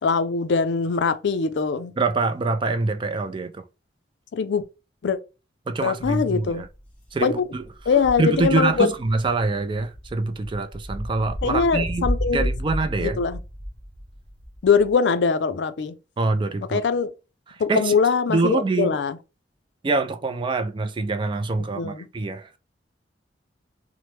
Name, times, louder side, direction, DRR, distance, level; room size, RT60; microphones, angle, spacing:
voice 1, 0.0-1.9 4.3-4.6 5.0-5.2 5.8-6.6 7.2-7.3 7.9-8.9 11.4-12.5 13.0-13.4 14.6-15.9 16.7-17.1 17.6-19.2 21.7-22.1, left 5 dB, 70° left, 0.4 m, -22 dB
voice 2, 2.0-3.6 5.7-6.7 7.1-7.6 8.2-13.2 16.2-16.8 17.5-17.9 18.3-19.0 19.8-22.6, right 3 dB, 25° right, 0.3 m, -25 dB
sound 1, 6.0-14.9, equal, 5° left, 0.7 m, -32 dB
3.0 x 2.0 x 3.2 m
head